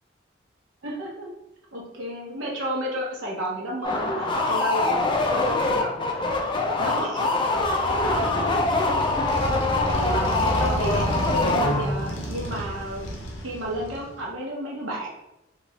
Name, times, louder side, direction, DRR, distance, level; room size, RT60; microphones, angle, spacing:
voice 1, 0.8-1.3 1.7-6.4 6.8-7.4 7.8-9.3 9.8-13.1 13.4-15.1, equal, 90° right, -2 dB, 0.7 m, -32 dB
sound 1, 3.8-12.2, left 2 dB, 25° left, 0.4 m, -24 dB
Motorcycle, 7.6-14.2, equal, 75° left, 0.6 m, -31 dB
2.8 x 2.4 x 3.1 m, 0.90 s
head